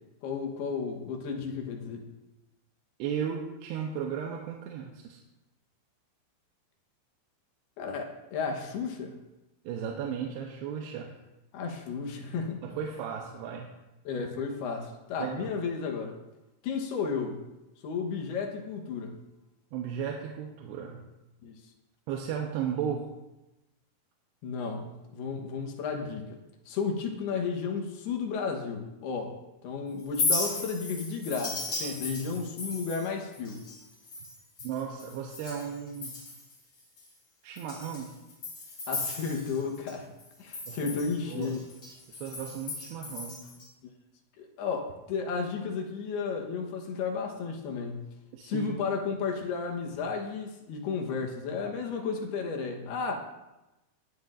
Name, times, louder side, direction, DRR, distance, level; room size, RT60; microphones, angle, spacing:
voice 1, 0.2-2.0 7.8-9.2 11.5-12.6 14.1-16.1 16.6-17.4 17.8-19.2 21.4-21.6 24.4-26.4 26.7-29.3 29.6-33.6 38.9-40.1 40.4-41.6 44.4-48.1 48.4-53.1, left 5 dB, 75° left, 2 dB, 3.2 m, -33 dB
voice 2, 3.0-5.2 9.6-11.2 12.6-13.7 15.2-15.5 19.7-21.0 22.1-23.1 34.6-36.1 37.4-38.1 40.7-41.0 41.3-41.6 42.1-43.5 48.3-48.8, right 8 dB, 85° right, 1 dB, 2.9 m, -35 dB
Chink clink, 30.0-35.7 35.9-36.5 37.0-37.1 37.6-39.9 40.2-43.7, left 3 dB, 45° left, 4.7 m, -36 dB
19.0 x 11.0 x 2.6 m, 1.0 s
omnidirectional pair, 4.6 m